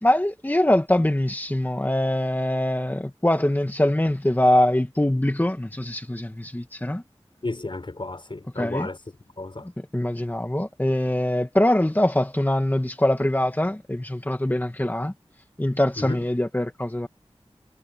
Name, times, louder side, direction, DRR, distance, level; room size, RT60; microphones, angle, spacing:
voice 1, 0.0-7.0 8.5-8.9 9.6-15.1 15.6-17.1, left 1 dB, 20° left, 2.1 m, -23 dB
voice 2, 7.4-9.0 9.4-9.7 16.0-16.2, left 2 dB, 55° left, 6.4 m, -32 dB
wide cardioid pair, 55°, 10 cm